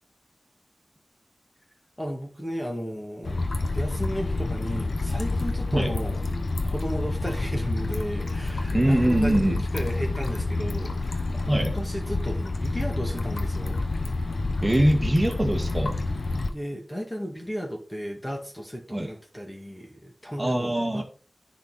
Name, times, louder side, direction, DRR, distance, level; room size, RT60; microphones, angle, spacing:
voice 1, 2.0-3.4 3.7-6.2 6.6-13.8 16.5-21.0, equal, 15° left, 1 dB, 2.0 m, -34 dB
sound 1, 3.2-16.5, left 2 dB, 90° left, 0.8 m, -28 dB
voice 2, 8.7-9.6 11.5-11.7 14.6-16.0 18.9-19.1 20.4-21.0, right 1 dB, 20° right, 3 dB, 1.7 m, -23 dB
10.0 x 4.3 x 4.0 m, 0.38 s
wide cardioid pair, 55°, 0 cm